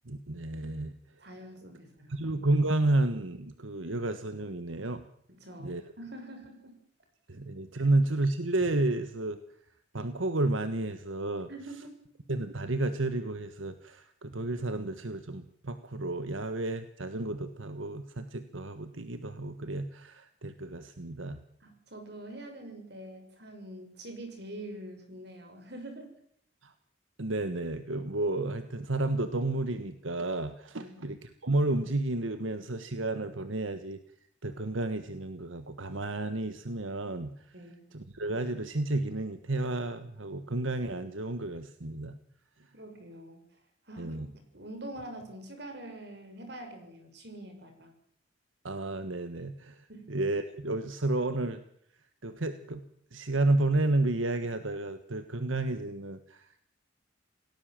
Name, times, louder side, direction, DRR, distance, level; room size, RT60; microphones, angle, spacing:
voice 1, 0.1-1.0 2.1-5.0 5.6-5.8 7.3-9.4 9.9-11.5 12.3-21.4 26.6-26.7 27.2-34.0 34.4-37.3 37.9-42.1 44.0-44.3 48.6-49.8 50.1-51.6 52.2-52.8 53.1-56.6, right 2 dB, 85° right, 10 dB, 1.5 m, -31 dB
voice 2, 1.2-2.2 5.3-6.8 11.5-12.1 21.6-26.1 30.8-31.0 37.5-37.8 42.7-43.4 43.9-44.2 44.5-47.9 49.9-50.1, right 1 dB, 55° right, 6 dB, 6.5 m, -45 dB
28.5 x 18.0 x 7.7 m, 0.68 s
head